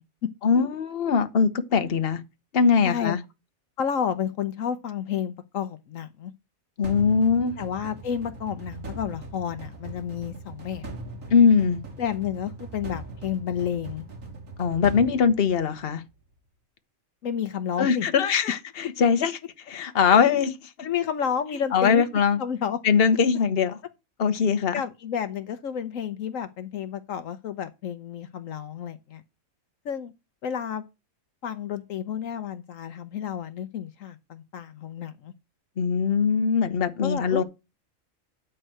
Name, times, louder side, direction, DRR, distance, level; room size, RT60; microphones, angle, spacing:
voice 1, 0.4-2.2 2.5-3.2 6.8-7.6 11.3-11.8 14.6-16.0 17.8-19.3 19.7-20.5 21.7-22.4 22.8-23.8 24.2-24.7 35.8-37.4, left 6 dB, 45° left, 1.1 m, -21 dB
voice 2, 2.8-3.2 3.8-6.3 7.6-10.9 12.0-14.0 17.2-18.1 20.1-20.2 20.8-22.1 22.4-22.8 24.7-29.2 29.8-30.1 30.4-30.8 31.4-35.3 37.0-37.4, left 8 dB, 70° left, 1.1 m, -31 dB
sound 1, 6.8-16.0, right 2 dB, 65° right, 2.2 m, -40 dB
9.1 x 4.6 x 7.6 m
omnidirectional pair, 1.5 m